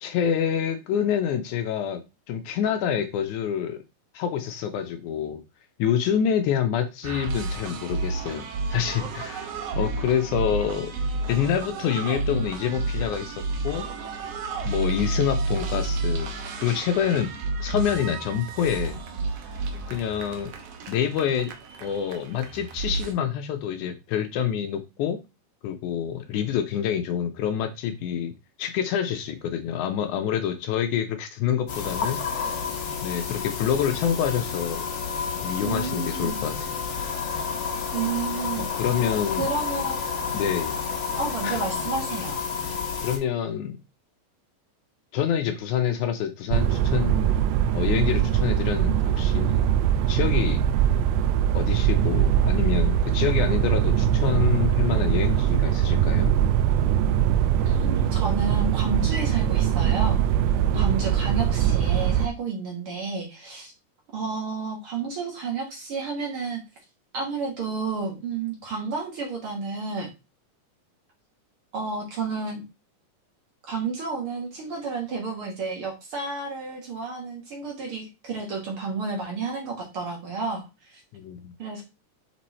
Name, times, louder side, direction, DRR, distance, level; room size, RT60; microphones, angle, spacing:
voice 1, 0.0-2.0 2.3-3.8 4.1-5.4 5.8-10.9 11.3-13.9 14.7-16.3 16.6-17.3 17.6-19.0 19.9-20.5 20.9-21.5 21.8-25.2 25.6-32.6 33.0-34.9 35.4-36.8 38.6-39.5 40.3-40.8 41.4-41.6 43.0-43.8 45.1-47.4 47.7-49.7 50.1-50.6 51.5-56.3 60.8-61.0 81.1-81.5, left 9 dB, 75° left, 2.0 m, -27 dB
sound 1, 7.0-23.1, right 3 dB, 65° right, 1.8 m, -31 dB
sound 2, 31.7-43.2, left 6 dB, 55° left, 2.1 m, -30 dB
voice 2, 35.6-36.4 37.9-38.7 39.4-40.0 41.2-42.4 57.7-60.2 60.7-63.7 64.1-66.6 67.1-70.1 71.7-72.6 73.6-81.0 81.6-81.8, right 4 dB, 50° right, 2.0 m, -31 dB
sound 3, 46.5-62.3, right 10 dB, 85° right, 2.1 m, -22 dB
6.1 x 4.4 x 4.1 m
omnidirectional pair, 3.7 m